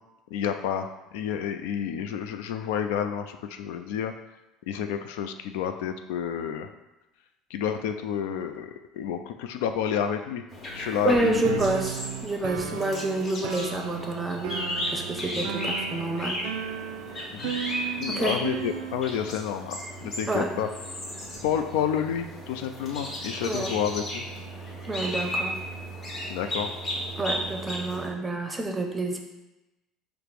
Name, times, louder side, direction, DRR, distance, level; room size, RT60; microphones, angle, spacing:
voice 1, 0.3-4.1 4.7-6.7 7.5-10.4 10.7-11.6 12.7-12.8 17.3-17.5 18.0-20.7 21.4-24.3 26.3-26.7, left 8 dB, 85° left, 7 dB, 0.3 m, -30 dB
sound 1, 10.5-28.1, equal, 40° left, 1.2 m, -35 dB
voice 2, 11.0-16.4 18.1-18.4 20.0-20.5 23.4-23.7 24.8-25.6 27.2-29.2, right 2 dB, 15° right, 4 dB, 0.6 m, -28 dB
sound 2, 11.4-19.3, right 10 dB, 85° right, 0.3 m, -36 dB
5.0 x 2.0 x 4.5 m, 0.99 s
cardioid pair, 120°, 0 cm